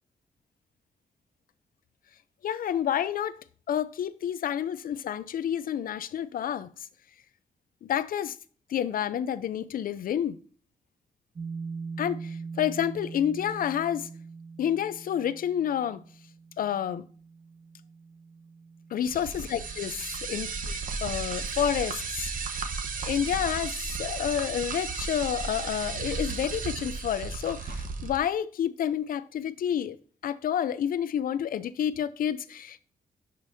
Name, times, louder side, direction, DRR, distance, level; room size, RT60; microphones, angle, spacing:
voice 1, 2.4-6.7 7.8-8.4 8.7-10.4 12.0-14.1 14.6-16.0 16.6-17.0 18.9-22.3 22.9-30.0 30.2-32.8, left 9 dB, 75° left, 0.5 m, -29 dB
sound 1, 11.3-20.8, right 4 dB, 40° right, 1.2 m, -43 dB
sound 2, 19.1-28.2, right 4 dB, 65° right, 1.0 m, -34 dB
10.5 x 5.3 x 2.7 m
cardioid pair, 95°, 15 cm